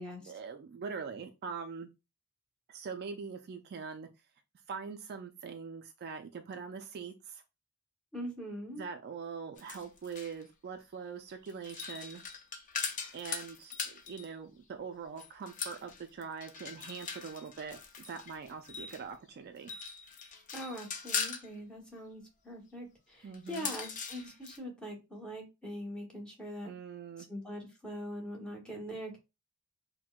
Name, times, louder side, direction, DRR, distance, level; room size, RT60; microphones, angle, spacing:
voice 1, 0.3-1.9 2.7-4.1 4.7-7.4 8.8-12.2 13.1-17.8 18.1-19.7 23.2-23.7 26.6-27.3, right 5 dB, 45° right, 6 dB, 0.3 m, -43 dB
voice 2, 8.1-8.8 20.5-26.7 27.3-29.2, equal, 5° left, -1 dB, 1.0 m, -42 dB
sound 1, 9.6-10.4 11.5-14.3 15.2-19.1 19.6-21.5 23.3-24.6, left 6 dB, 35° left, 0.5 m, -40 dB
4.3 x 2.1 x 2.3 m, 0.26 s
head